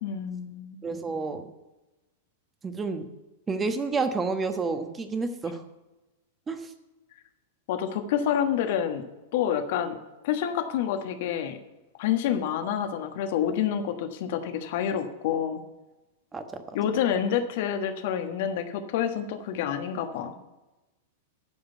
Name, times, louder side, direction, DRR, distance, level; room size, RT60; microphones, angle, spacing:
voice 1, 0.0-0.9 7.7-9.0 9.3-10.0 10.2-11.6 12.0-15.6 16.7-20.3, left 9 dB, 55° left, 7 dB, 1.2 m, -28 dB
voice 2, 0.8-1.5 2.6-3.0 3.5-5.6 6.5-6.6 16.3-16.4, right 4 dB, 20° right, 8 dB, 1.2 m, -29 dB
12.0 x 5.1 x 8.3 m, 1.0 s
figure-of-eight pair, 100°, 0 cm